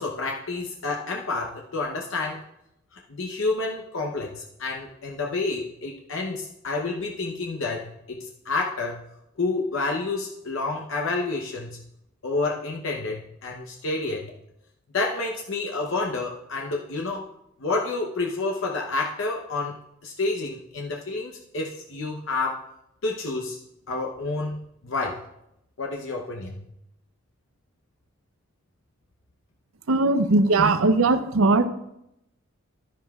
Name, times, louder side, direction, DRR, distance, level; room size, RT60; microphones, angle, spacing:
voice 1, 0.0-2.4 3.1-8.2 8.4-9.0 9.4-11.8 12.2-14.3 14.9-17.3 17.6-19.8 20.0-22.6 23.0-23.6 23.9-24.6 24.8-25.2 25.8-26.7, left 3 dB, 70° left, 0 dB, 0.8 m, -29 dB
voice 2, 29.9-31.7, right 3 dB, 90° right, 11 dB, 0.6 m, -19 dB
11.5 x 10.5 x 2.4 m, 0.83 s
head